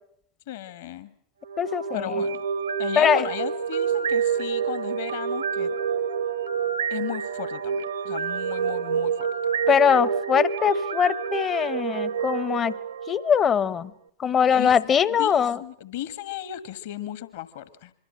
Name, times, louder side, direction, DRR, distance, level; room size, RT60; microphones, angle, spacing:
voice 1, 0.5-1.1 1.9-2.4 2.8-5.7 6.9-9.3 14.4-14.7 15.1-17.9, left 12 dB, 55° left, 15 dB, 1.6 m, -35 dB
sound 1, 1.4-13.6, right 7 dB, 70° right, 1.2 m, -28 dB
voice 2, 1.6-2.1 3.0-3.3 9.7-12.7 13.1-13.9 14.2-15.6, left 7 dB, 25° left, 20 dB, 0.9 m, -22 dB
25.5 x 23.5 x 6.4 m, 0.67 s
figure-of-eight pair, 90°, 0 cm